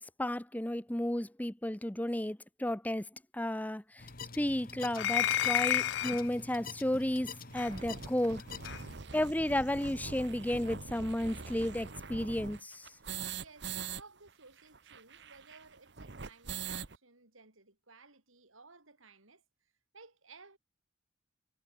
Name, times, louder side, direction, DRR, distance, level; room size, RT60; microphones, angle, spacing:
voice 1, 0.2-3.0 3.3-3.8 4.3-8.4 9.1-12.8, left 1 dB, 10° left, 0.6 m, -33 dB
sound 1, 4.0-9.0, left 4 dB, 45° left, 1.6 m, -46 dB
sound 2, 4.9-6.3 7.6-7.7 8.6-8.8, left 11 dB, 60° left, 0.4 m, -30 dB
sound 3, 5.3-5.4 6.1-6.2 6.5-6.6 6.9-7.0 7.3-14.0 14.3-14.4 14.6-17.0, right 5 dB, 55° right, 1.0 m, -43 dB
voice 2, 13.4-20.6, right 4 dB, 85° right, 5.9 m, -58 dB
head